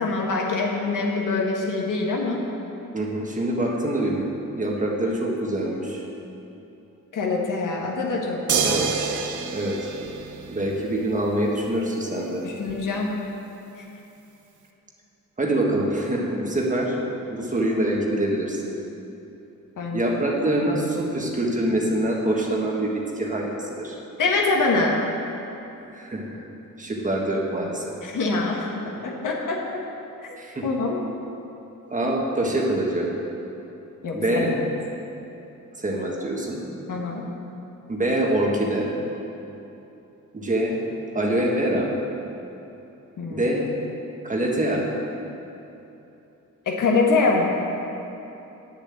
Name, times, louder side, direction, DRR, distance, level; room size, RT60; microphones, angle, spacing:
voice 1, 0.0-2.4 7.1-8.8 12.4-13.2 13.8-13.9 19.8-20.0 24.2-25.0 28.0-29.8 30.2-30.4 30.6-31.0 34.0-34.5 36.9-37.2 43.2-43.5 46.6-47.5, left 3 dB, 70° left, -1 dB, 1.7 m, -24 dB
voice 2, 2.9-4.2 4.5-6.0 8.6-8.9 9.5-9.8 10.5-12.4 15.4-17.0 17.3-18.6 19.9-24.0 25.9-26.4 26.8-27.8 30.4-30.7 31.9-33.1 34.1-34.6 35.8-36.6 37.9-38.9 40.3-40.8 41.1-41.9 43.3-43.7 44.2-44.8, right 1 dB, 25° right, -1 dB, 1.4 m, -25 dB
sound 1, 8.5-11.0 12.7-12.8, right 6 dB, 65° right, 0.8 m, -27 dB
9.7 x 6.9 x 8.7 m, 3.0 s
wide cardioid pair, 160°, 33 cm